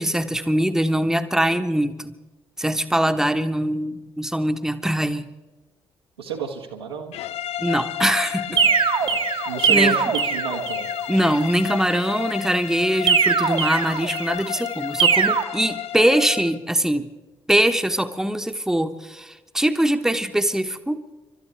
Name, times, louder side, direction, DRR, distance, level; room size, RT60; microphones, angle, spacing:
voice 1, 0.0-2.1 2.6-5.3 7.6-8.6 9.7-10.0 11.1-17.1 17.5-21.0, right 1 dB, 5° right, 7 dB, 1.1 m, -22 dB
voice 2, 6.2-7.2 8.5-10.9, right 6 dB, 80° right, 0 dB, 1.4 m, -32 dB
sound 1, 7.1-16.6, left 11 dB, 50° left, 0.4 m, -31 dB
sound 2, 8.6-11.0 13.1-14.4 15.0-15.4, right 6 dB, 40° right, 1.1 m, -21 dB
29.5 x 13.0 x 3.3 m, 1.1 s
figure-of-eight pair, 40°, 13 cm